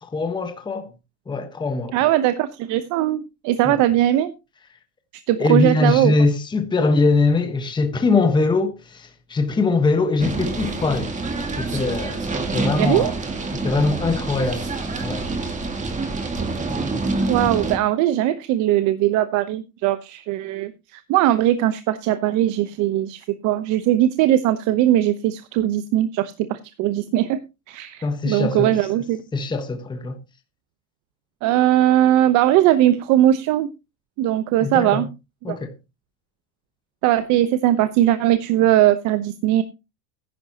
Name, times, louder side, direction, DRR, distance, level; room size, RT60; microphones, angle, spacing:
voice 1, 0.0-0.9 1.3-2.0 3.6-3.8 5.4-11.1 11.6-13.1 13.6-14.7 15.0-15.3 28.0-28.8 29.3-30.2 34.6-35.1 35.4-35.7, left 3 dB, 10° left, 1.2 m, -22 dB
voice 2, 1.9-4.3 5.3-6.1 12.8-13.1 17.3-27.4 27.7-29.2 31.4-33.7 34.2-35.1 35.5-35.6 37.0-39.6, right 13 dB, 55° right, 0.9 m, -19 dB
sound 1, 10.2-17.8, right 3 dB, 20° right, 2.1 m, -26 dB
14.0 x 10.5 x 2.9 m
supercardioid pair, 135°, 36 cm